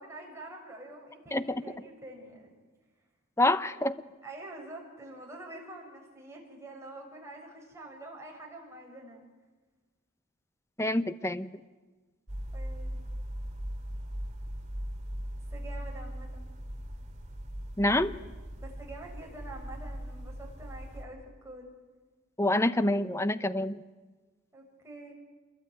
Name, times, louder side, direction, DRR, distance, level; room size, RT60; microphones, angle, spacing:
voice 1, 0.0-2.5 4.2-9.2 12.5-13.0 15.5-16.5 18.6-21.7 24.5-25.1, right 2 dB, 15° right, 0 dB, 6.9 m, -46 dB
voice 2, 1.3-1.6 3.4-4.0 10.8-11.5 17.8-18.1 22.4-23.8, left 1 dB, 10° left, 13 dB, 0.8 m, -27 dB
sound 1, 12.3-21.0, equal, 35° right, 2.7 m, -39 dB
27.5 x 22.5 x 9.4 m, 1.3 s
head